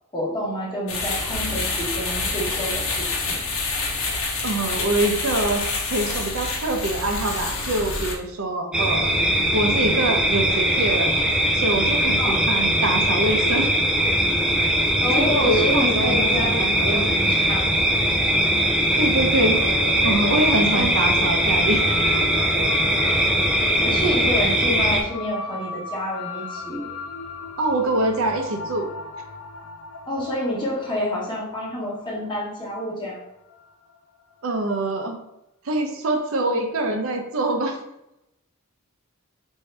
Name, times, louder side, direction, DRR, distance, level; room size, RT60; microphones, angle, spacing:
voice 1, 0.1-3.4 12.2-12.4 15.0-17.7 20.7-20.9 23.8-26.9 30.1-33.2, left 1 dB, 20° left, -5 dB, 1.1 m, -28 dB
sound 1, 0.9-8.1, left 3 dB, 65° left, 0.8 m, -27 dB
voice 2, 4.4-9.1 9.5-11.1 11.5-13.7 15.1-17.2 19.0-19.6 20.0-21.8 22.1-22.2 27.6-28.9 34.4-35.2 35.6-37.8, right 2 dB, 65° right, 4 dB, 0.6 m, -24 dB
sound 2, 8.7-25.0, right 1 dB, 5° right, 0.3 m, -21 dB
sound 3, 19.3-34.0, left 4 dB, 80° left, 0.5 m, -37 dB
4.6 x 2.7 x 3.2 m, 0.85 s
head